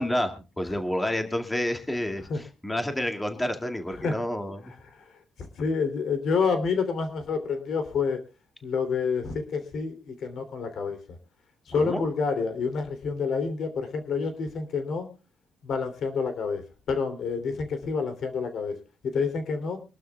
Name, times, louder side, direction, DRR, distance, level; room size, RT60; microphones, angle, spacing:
voice 1, 0.0-4.6 11.8-12.0, left 1 dB, 10° left, 6 dB, 2.2 m, -29 dB
voice 2, 5.6-8.2 8.6-11.0 11.7-15.1 15.6-18.7 19.0-19.8, left 5 dB, 65° left, 8 dB, 3.1 m, -28 dB
25.0 x 12.0 x 2.3 m, 0.31 s
cardioid pair, 90°, 0 cm